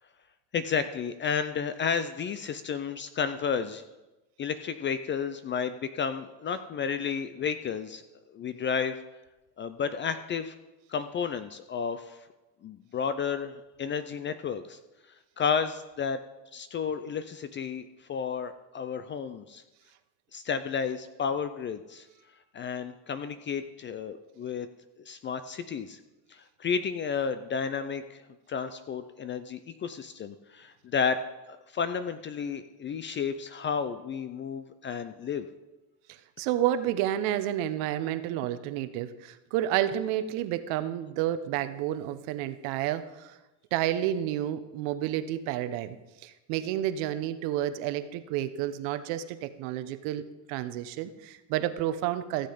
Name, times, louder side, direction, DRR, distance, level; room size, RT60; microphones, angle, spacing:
voice 1, 0.5-3.8 4.4-8.0 8.3-9.0 9.6-10.5 10.9-12.2 12.6-14.8 15.4-16.2 16.5-19.6 20.3-22.1 22.5-24.7 25.1-26.0 26.3-28.2 28.5-31.2 31.5-35.5, left 6 dB, 25° left, 11 dB, 0.3 m, -32 dB
voice 2, 36.1-43.4 43.7-52.5, right 12 dB, 75° right, 11 dB, 1.0 m, -30 dB
15.0 x 7.7 x 5.1 m, 1.1 s
cardioid pair, 130°, 49 cm